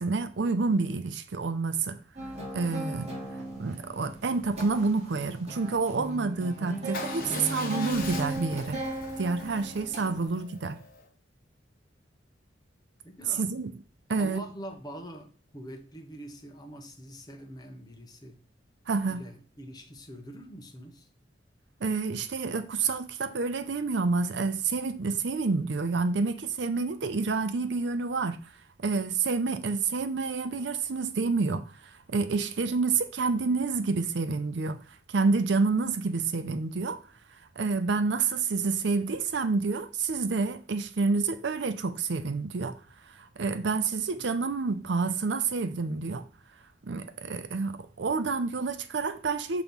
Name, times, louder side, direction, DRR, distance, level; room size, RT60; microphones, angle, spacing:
voice 1, 0.0-2.0 2.5-3.1 3.5-8.8 9.2-10.8 13.4-13.7 14.1-14.4 18.9-19.2 21.8-28.4 28.8-31.7 32.1-34.8 35.1-37.0 37.6-42.8 43.2-46.2 46.8-49.6, right 4 dB, 75° right, 0.6 m, -28 dB
sound 1, 2.2-10.2, right 1 dB, 35° right, 1.6 m, -38 dB
Motorcycle / Engine starting / Idling, 6.9-11.0, left 3 dB, 50° left, 1.1 m, -41 dB
voice 2, 13.0-13.5 14.1-18.4 19.1-21.1 44.2-44.3, equal, 20° left, 1.0 m, -44 dB
5.8 x 3.0 x 5.3 m
head